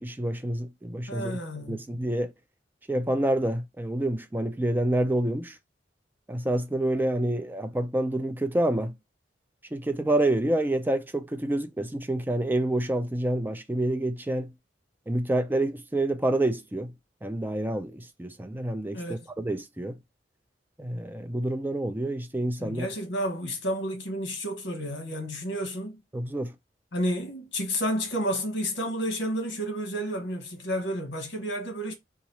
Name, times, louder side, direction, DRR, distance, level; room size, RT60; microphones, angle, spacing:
voice 1, 0.0-1.4 1.7-2.3 2.9-5.6 6.3-8.9 9.7-14.5 15.1-16.9 17.2-20.0 20.8-22.9 26.1-26.5, right 1 dB, 10° right, 0.3 m, -28 dB
voice 2, 1.1-2.0 18.9-19.3 22.6-26.0 26.9-31.9, equal, 75° left, 1.1 m, -31 dB
2.9 x 2.4 x 4.1 m
head